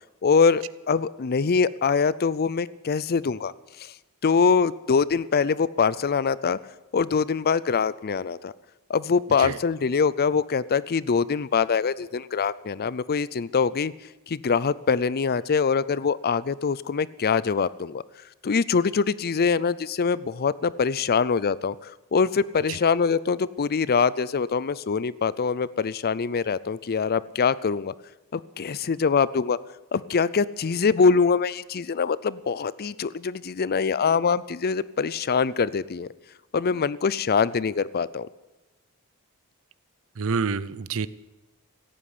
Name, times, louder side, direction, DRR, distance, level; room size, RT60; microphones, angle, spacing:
voice 1, 0.2-3.5 3.8-3.9 4.2-6.6 6.9-8.5 8.9-13.9 14.3-18.0 18.4-27.9 28.3-29.6 29.9-36.1 36.5-38.3, left 5 dB, 45° left, 19 dB, 0.5 m, -24 dB
voice 2, 40.2-41.1, right 5 dB, 65° right, 18 dB, 0.6 m, -27 dB
16.5 x 8.8 x 9.6 m, 1.1 s
head